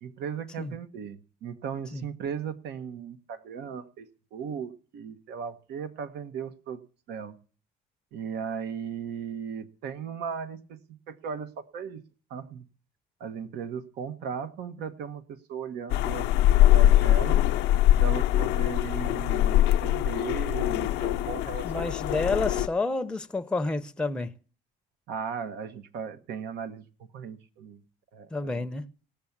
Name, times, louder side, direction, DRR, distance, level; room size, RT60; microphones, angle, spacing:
voice 1, 0.0-7.4 8.1-12.0 12.3-12.6 13.2-16.5 16.7-17.5 18.0-22.0 25.1-27.8 28.1-28.7, right 7 dB, 80° right, 1.2 m, -37 dB
sound 1, 15.9-22.7, left 13 dB, 90° left, 0.6 m, -22 dB
voice 2, 21.6-24.3 28.3-28.8, left 3 dB, 5° left, 0.6 m, -29 dB
18.0 x 7.0 x 7.2 m
cardioid pair, 110°, 17 cm